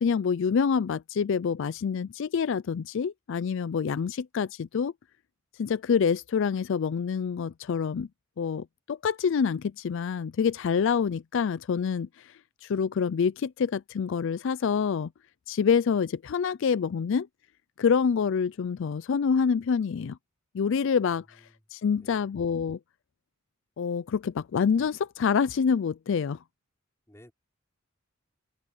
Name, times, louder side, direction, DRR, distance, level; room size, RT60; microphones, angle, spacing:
voice 1, 0.0-4.9 5.6-8.1 8.4-12.3 12.6-15.1 15.5-17.3 17.8-20.2 20.5-21.4 21.7-22.8 23.8-26.4, left 6 dB, 65° left, 0.4 m, -26 dB
voice 2, 21.4-21.5 22.0-22.3 27.1-27.3, equal, 15° left, 5.2 m, -54 dB
head